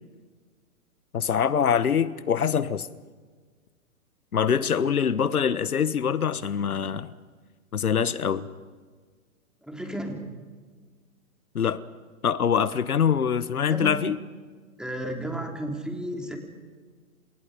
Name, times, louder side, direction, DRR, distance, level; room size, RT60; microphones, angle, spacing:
voice 1, 1.1-2.9 4.3-7.1 7.7-8.5 11.5-11.8 12.2-14.2, left 7 dB, 80° left, 15 dB, 1.4 m, -24 dB
voice 2, 9.6-10.2 13.7-14.0 14.8-16.4, right 1 dB, ahead, 3 dB, 3.3 m, -33 dB
29.0 x 27.5 x 5.2 m, 1.5 s
hypercardioid pair, 135°, 43 cm